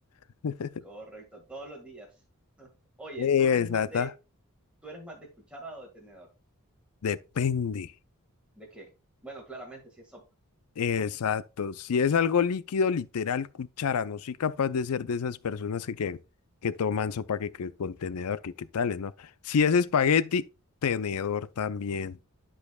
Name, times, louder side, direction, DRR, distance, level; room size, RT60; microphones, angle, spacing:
voice 1, 0.8-2.1 2.6-2.7 3.0-4.1 4.8-6.3 8.5-8.9 9.2-10.2 11.0-11.1, right 2 dB, 5° right, 1.8 m, -44 dB
voice 2, 3.2-4.1 7.0-7.9 10.8-16.2 16.6-20.4 20.8-22.2, left 6 dB, 80° left, 0.5 m, -27 dB
12.0 x 5.0 x 2.3 m
head